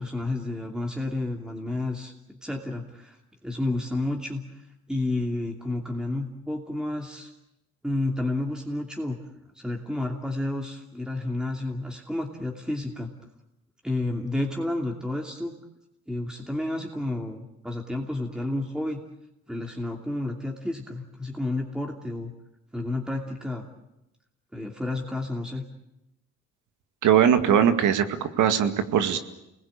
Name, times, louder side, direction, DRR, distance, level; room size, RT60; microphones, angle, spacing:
voice 1, 0.0-3.2 3.4-4.6 4.9-7.3 7.8-9.2 9.5-13.1 13.8-15.5 16.1-19.0 19.5-22.3 22.7-23.7 24.5-25.6, left 2 dB, 5° right, 1 dB, 2.7 m, -30 dB
voice 2, 27.0-29.2, right 9 dB, 80° right, 8 dB, 2.1 m, -21 dB
28.5 x 20.5 x 8.8 m, 0.89 s
cardioid pair, 90°, 30 cm